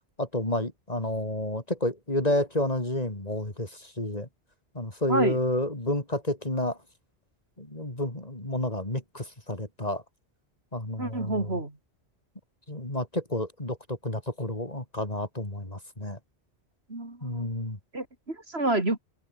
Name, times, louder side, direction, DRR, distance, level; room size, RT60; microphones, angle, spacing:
voice 1, 0.2-4.3 4.7-6.8 7.6-10.0 10.7-11.5 12.7-16.2 17.2-17.8, left 1 dB, 35° left, 4.5 m, -30 dB
voice 2, 11.0-11.7 16.9-17.5 17.9-19.0, right 2 dB, 70° right, 4.8 m, -29 dB
omnidirectional pair, 1.1 m